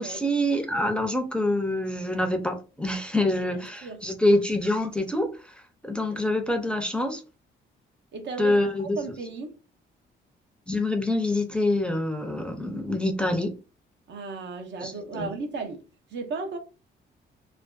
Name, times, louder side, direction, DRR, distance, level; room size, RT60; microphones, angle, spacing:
voice 1, 0.0-5.3 5.8-7.2 8.4-9.0 10.7-13.5 14.8-15.3, left 1 dB, 5° left, 0.4 m, -26 dB
voice 2, 8.1-9.5 14.1-15.8 16.1-16.6, right 4 dB, 65° right, 0.6 m, -35 dB
2.5 x 2.2 x 2.3 m
cardioid pair, 90°, 20 cm